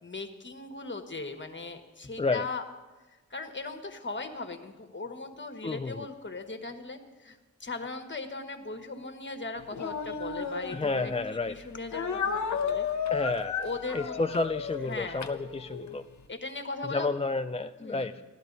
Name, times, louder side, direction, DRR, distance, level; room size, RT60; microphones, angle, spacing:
voice 1, 0.0-2.6 3.1-12.9 13.6-14.2 14.9-15.2 16.3-17.1 17.8-18.1, left 3 dB, 40° left, 7 dB, 1.4 m, -39 dB
voice 2, 5.6-6.1 10.7-11.7 13.1-13.6 13.9-16.0 16.9-18.2, left 3 dB, 20° left, 8 dB, 0.4 m, -31 dB
Speech, 9.7-11.3 11.9-16.0, left 6 dB, 70° left, 0.9 m, -33 dB
15.5 x 12.5 x 4.0 m, 1.2 s
cardioid pair, 55°, 30 cm